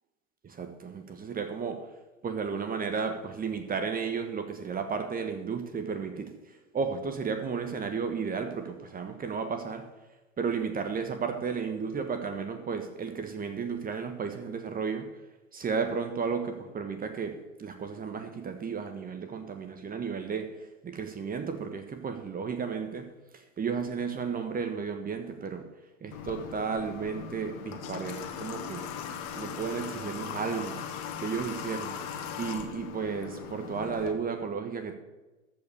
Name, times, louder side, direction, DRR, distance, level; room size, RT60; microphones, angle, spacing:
voice 1, 0.4-1.8 2.2-9.8 10.4-15.1 15.5-23.1 23.3-25.6 26.0-28.8 29.3-30.8 31.2-31.9 32.4-34.9, right 5 dB, 20° right, 6 dB, 1.5 m, -33 dB
Water / Water tap faucet, 26.1-34.1, left 7 dB, 45° left, 1.9 m, -39 dB
14.0 x 5.7 x 6.8 m, 1.1 s
hypercardioid pair, 100°, 39 cm